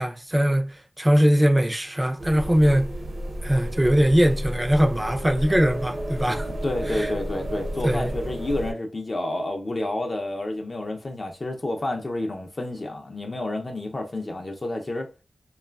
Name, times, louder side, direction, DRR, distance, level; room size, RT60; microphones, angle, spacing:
voice 1, 0.0-2.9 3.4-6.5 6.9-7.1 7.8-8.1, equal, 15° right, 0.5 m, -21 dB
sound 1, 2.2-8.7, equal, 55° right, 0.8 m, -31 dB
voice 2, 6.6-15.1, left 1 dB, 45° left, 0.5 m, -30 dB
3.0 x 2.3 x 2.3 m
cardioid pair, 60°, 0 cm